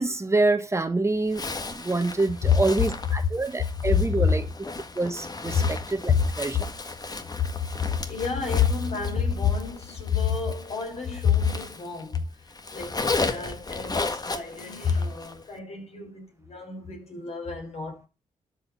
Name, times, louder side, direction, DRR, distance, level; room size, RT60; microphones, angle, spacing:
voice 1, 0.0-4.4 4.9-6.6, right 2 dB, 20° right, 1.4 m, -26 dB
Zipper (clothing), 1.3-12.2 12.5-15.4, left 3 dB, 30° left, 1.7 m, -35 dB
voice 2, 7.7-18.1, left 7 dB, 55° left, 6.4 m, -28 dB
12.5 x 4.9 x 6.1 m
cardioid pair, 75°, 13 cm